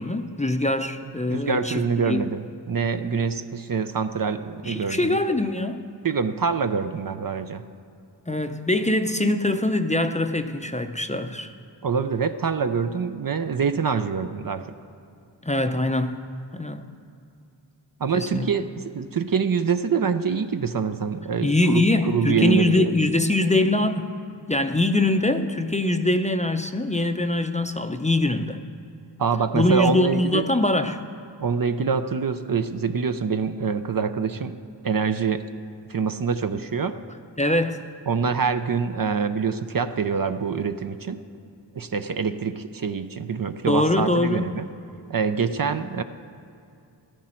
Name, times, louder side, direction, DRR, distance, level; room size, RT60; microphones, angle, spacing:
voice 1, 0.0-2.3 4.6-5.9 8.3-11.5 15.4-16.2 16.5-16.8 18.1-18.5 21.4-24.1 24.5-28.6 29.5-31.0 37.4-37.9 43.7-44.6, left 2 dB, 15° left, 7 dB, 0.6 m, -23 dB
voice 2, 1.3-5.2 6.0-7.6 11.8-14.6 18.0-18.7 18.9-22.9 29.2-30.4 31.4-34.6 34.8-35.4 35.9-37.0 38.1-41.2 41.7-44.7 45.1-46.0, right 5 dB, 50° right, 9 dB, 0.6 m, -25 dB
14.0 x 12.5 x 4.4 m, 2.6 s
wide cardioid pair, 50°, 44 cm